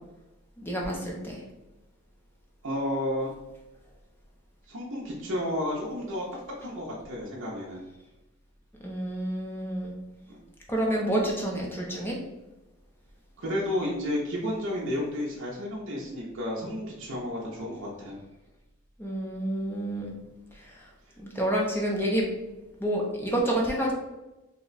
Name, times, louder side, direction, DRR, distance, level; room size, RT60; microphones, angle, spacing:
voice 1, 0.6-1.4 8.8-9.9 10.7-12.2 19.0-20.1 21.2-22.3 22.8-23.9, right 1 dB, 10° left, -2 dB, 0.5 m, -28 dB
voice 2, 2.6-3.3 4.7-6.2 6.6-7.9 10.3-10.4 13.4-18.2, left 1 dB, 55° right, -4 dB, 0.6 m, -32 dB
2.8 x 2.1 x 3.9 m, 1.0 s
head